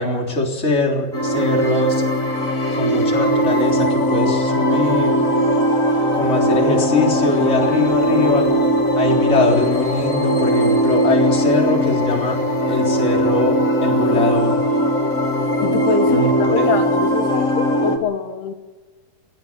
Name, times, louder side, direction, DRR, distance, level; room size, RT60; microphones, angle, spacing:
voice 1, 0.0-2.0 2.7-5.2 6.1-8.5 8.9-12.4 12.7-14.6 16.1-16.7, left 2 dB, 20° left, 1 dB, 3.4 m, -21 dB
sound 1, 1.1-18.0, equal, 35° left, 1.3 m, -19 dB
voice 2, 15.6-18.5, left 6 dB, 75° left, 7 dB, 3.4 m, -24 dB
18.0 x 18.0 x 9.4 m, 1.2 s
omnidirectional pair, 4.6 m